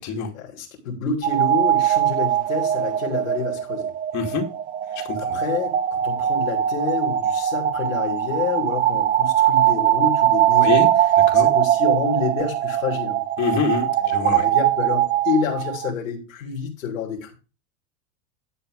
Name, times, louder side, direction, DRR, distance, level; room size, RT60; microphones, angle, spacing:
voice 1, 0.3-3.9 5.2-11.1 11.3-13.2 14.0-17.3, left 5 dB, 85° left, -3 dB, 3.2 m, -28 dB
sound 1, 1.2-15.9, right 11 dB, 20° right, 0.4 m, -21 dB
voice 2, 4.1-4.4 5.3-5.4 10.6-10.8 11.3-11.5 13.4-14.5, left 5 dB, 45° left, 0 dB, 2.4 m, -24 dB
11.5 x 5.0 x 5.3 m, 0.32 s
supercardioid pair, 115°, 39 cm